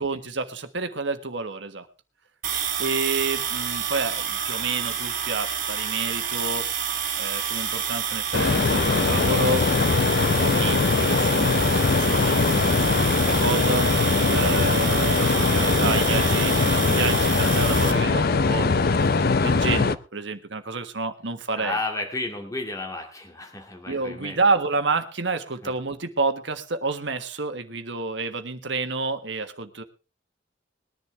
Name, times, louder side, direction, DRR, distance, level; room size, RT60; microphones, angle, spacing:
voice 1, 0.0-1.9 2.8-6.7 7.2-13.9 14.3-18.7 19.4-21.8 23.9-29.8, right 3 dB, 65° right, 8 dB, 1.5 m, -29 dB
sound 1, 2.4-17.9, right 8 dB, 45° right, 2.6 m, -29 dB
sound 2, 4.6-5.1, right 1 dB, 5° right, 5.0 m, -49 dB
sound 3, 8.3-20.0, left 4 dB, 50° left, 0.6 m, -21 dB
voice 2, 15.3-15.8 21.6-24.4 25.6-25.7, left 2 dB, 15° left, 2 dB, 2.2 m, -33 dB
20.5 x 10.5 x 3.4 m, 0.32 s
head